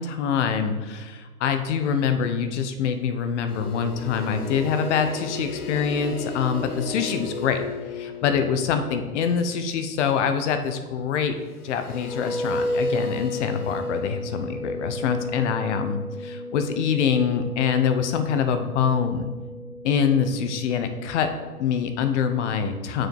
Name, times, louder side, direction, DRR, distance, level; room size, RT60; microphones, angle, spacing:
voice 1, 0.0-7.6 7.9-11.4 11.6-19.3 19.8-21.3 21.6-23.1, left 7 dB, 50° left, 8 dB, 0.9 m, -25 dB
sound 1, 3.5-10.1 11.5-21.8, left 1 dB, 80° left, 1.3 m, -34 dB
6.9 x 6.3 x 4.6 m, 1.3 s
hypercardioid pair, 140°, 45 cm